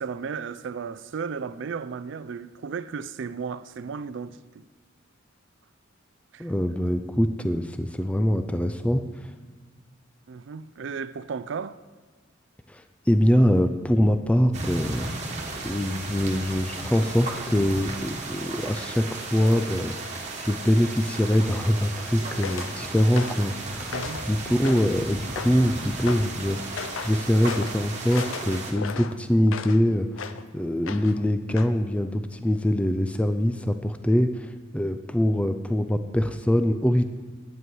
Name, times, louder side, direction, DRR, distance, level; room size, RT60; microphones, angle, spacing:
voice 1, 0.0-4.7 6.3-6.5 10.3-11.8 23.9-24.2, right 5 dB, 65° right, 0.4 m, -34 dB
voice 2, 6.4-9.0 12.7-15.1 15.6-19.9 20.4-24.0 24.2-37.0, equal, 5° left, 0.4 m, -24 dB
sound 1, 14.5-28.7, right 3 dB, 40° right, 1.6 m, -35 dB
sound 2, 22.4-22.7 23.2-23.5 23.9-24.3 24.6-25.0 25.4-25.7 26.1-26.3 26.8-27.1 27.4-27.8 28.1-29.8 30.2-30.4 30.9-31.2 31.6-31.7, left 6 dB, 90° left, 0.6 m, -35 dB
11.0 x 9.2 x 4.6 m
head